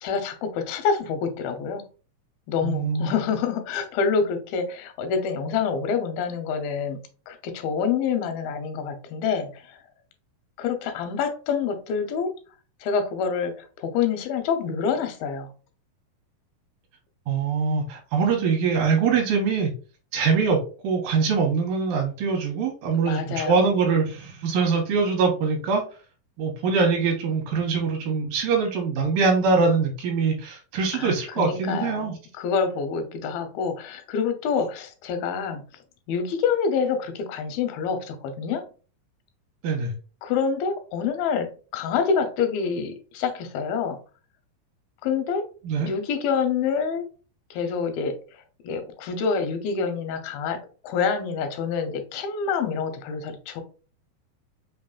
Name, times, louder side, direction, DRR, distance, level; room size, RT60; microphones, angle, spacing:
voice 1, 0.0-1.8 2.5-9.8 10.6-12.3 12.8-15.5 23.0-23.8 30.9-35.7 36.1-38.7 40.2-44.0 45.0-45.5 45.8-47.1 47.5-48.2 48.6-53.6, left 6 dB, 85° left, 8 dB, 2.4 m, -27 dB
voice 2, 2.6-3.1 17.3-19.7 20.1-25.8 26.4-32.2 39.6-39.9 45.6-45.9, right 5 dB, 75° right, 1 dB, 2.3 m, -23 dB
5.4 x 2.6 x 2.3 m, 0.37 s
omnidirectional pair, 4.1 m